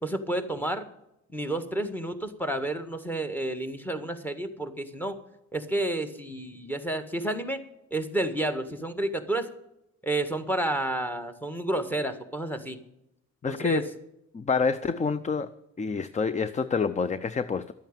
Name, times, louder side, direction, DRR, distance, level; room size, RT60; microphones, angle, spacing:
voice 1, 0.0-0.9 1.3-5.2 5.5-7.6 7.9-9.5 10.0-12.8 13.4-13.8, right 1 dB, 5° left, 9 dB, 1.7 m, -30 dB
voice 2, 13.4-13.9 14.3-15.5 15.8-17.7, left 5 dB, 25° left, 14 dB, 0.6 m, -27 dB
12.0 x 9.1 x 9.0 m, 0.83 s
cardioid pair, 90°, 30 cm